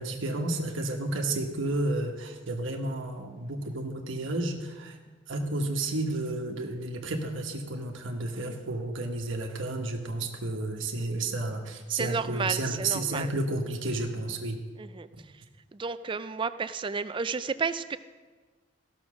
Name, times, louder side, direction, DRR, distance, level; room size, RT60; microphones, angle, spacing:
voice 1, 0.0-5.0 5.3-14.6, right 2 dB, 70° right, 2 dB, 1.2 m, -31 dB
voice 2, 11.9-13.3 14.8-15.1 15.8-18.0, right 5 dB, 25° right, 13 dB, 0.3 m, -32 dB
15.5 x 6.2 x 6.2 m, 1.4 s
head